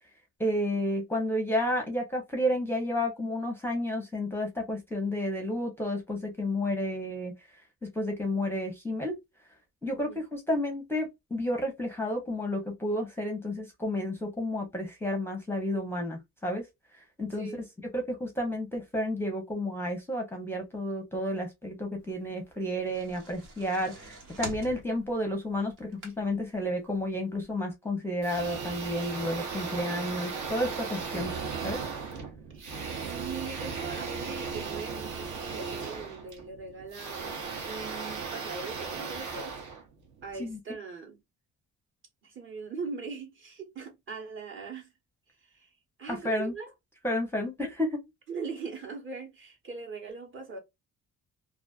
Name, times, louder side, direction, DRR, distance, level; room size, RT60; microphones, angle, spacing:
voice 1, 0.4-7.3 7.8-9.2 9.8-16.7 16.9-17.5 17.9-31.3 31.6-31.8 40.4-40.6 46.1-46.5 47.0-48.0, left 1 dB, 5° left, 0.6 m, -31 dB
voice 2, 9.9-10.2 17.3-17.6 32.5-39.6 40.2-41.2 42.2-44.9 45.3-46.7 48.3-50.6, right 4 dB, 40° right, 1.0 m, -41 dB
sound 1, 22.6-26.5 27.0-27.1 27.4-27.5, right 3 dB, 85° right, 1.3 m, -44 dB
sound 2, 28.2-40.4, right 5 dB, 65° right, 0.9 m, -36 dB
2.4 x 2.3 x 2.3 m
cardioid pair, 140°, 32 cm